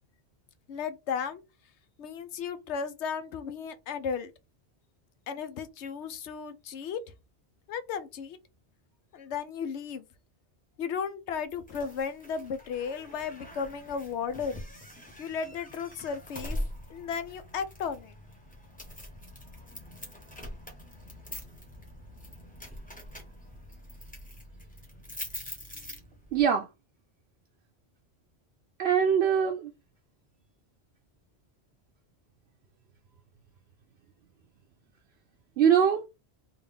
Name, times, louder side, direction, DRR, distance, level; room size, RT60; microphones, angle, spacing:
voice 1, 0.7-1.4 2.0-4.3 5.3-7.0 7.7-8.4 9.1-10.0 10.8-14.6 15.2-16.6 16.9-18.1, left 6 dB, 90° left, 0.9 m, -34 dB
sound 1, 11.5-26.5, equal, 10° left, 0.8 m, -43 dB
voice 2, 26.3-26.7 28.8-29.7 35.6-36.1, right 8 dB, 75° right, 0.8 m, -23 dB
3.7 x 2.4 x 3.4 m
omnidirectional pair, 1.1 m